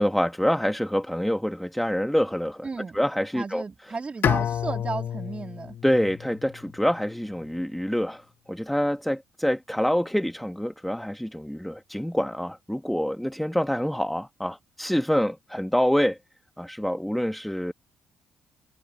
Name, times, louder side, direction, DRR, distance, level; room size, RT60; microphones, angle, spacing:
voice 1, 0.0-2.7 2.9-3.6 5.8-16.2 16.6-17.7, equal, 5° left, 1.6 m, -26 dB
voice 2, 2.6-3.0 3.3-5.8, right 4 dB, 35° right, 2.0 m, -34 dB
Bowed string instrument, 4.2-7.3, left 9 dB, 55° left, 1.4 m, -30 dB
hypercardioid pair, 45°, 4 cm